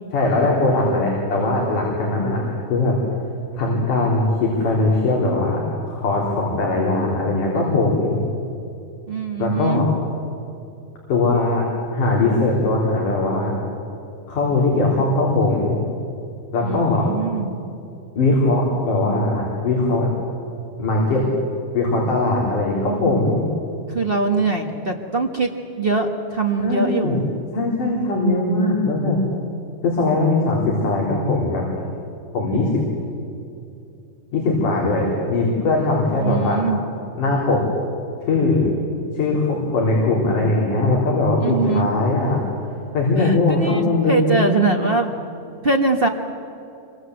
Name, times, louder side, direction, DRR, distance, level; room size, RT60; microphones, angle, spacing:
voice 1, 0.1-2.4 2.7-3.0 3.5-5.6 5.9-8.2 9.4-9.9 11.1-11.7 11.9-13.5 14.3-15.8 16.5-17.1 18.2-20.1 20.8-21.3 21.7-23.4 26.6-27.2 27.5-29.2 29.8-31.7 32.3-32.7 34.3-36.6 37.2-37.6 38.3-38.7 39.1-42.4 42.9-44.6, left 2 dB, 80° left, -3 dB, 5.2 m, -20 dB
voice 2, 9.1-9.9 16.6-17.5 23.9-25.5 25.8-27.3 27.8-28.4 36.2-36.8 41.4-41.9 43.2-45.1 45.6-46.1, right 3 dB, 50° right, 2 dB, 0.6 m, -22 dB
26.5 x 24.5 x 7.9 m, 2.7 s
omnidirectional pair, 3.6 m